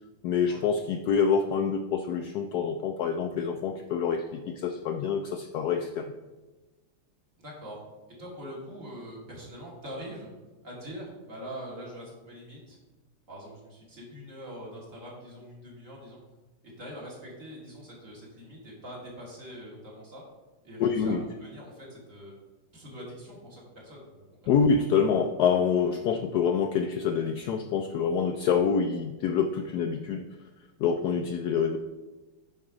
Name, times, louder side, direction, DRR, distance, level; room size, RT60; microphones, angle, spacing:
voice 1, 0.2-6.1 20.8-21.2 24.5-30.3 30.8-31.8, left 6 dB, 70° left, 6 dB, 1.0 m, -26 dB
voice 2, 7.4-7.8 8.2-10.3 10.6-12.8 13.3-16.2 16.8-20.2 20.6-22.3 22.7-24.2, equal, 40° right, -4 dB, 2.7 m, -43 dB
9.5 x 4.6 x 5.0 m, 1.2 s
omnidirectional pair, 2.1 m